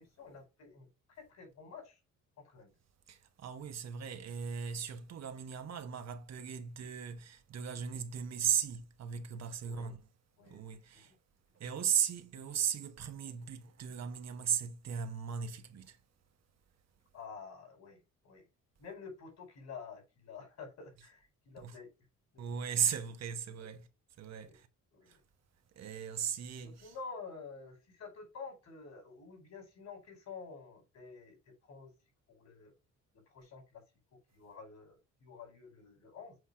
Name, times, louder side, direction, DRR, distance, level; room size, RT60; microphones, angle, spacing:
voice 1, 0.0-2.0 2.4-2.7 9.6-9.9 10.4-10.6 10.9-11.2 17.1-18.4 18.8-21.9 22.3-22.4 23.6-23.7 24.3-24.6 24.9-25.1 26.6-31.9 32.3-32.7 33.1-33.8 34.3-36.4, left 5 dB, 60° left, 4.4 m, -50 dB
voice 2, 3.1-10.1 10.4-11.1 11.5-16.0 21.6-21.8 22.4-23.9 24.2-24.7 25.1-25.2 25.7-26.9, right 8 dB, 60° right, 1.1 m, -37 dB
7.9 x 3.0 x 4.8 m
cardioid pair, 90°, 30 cm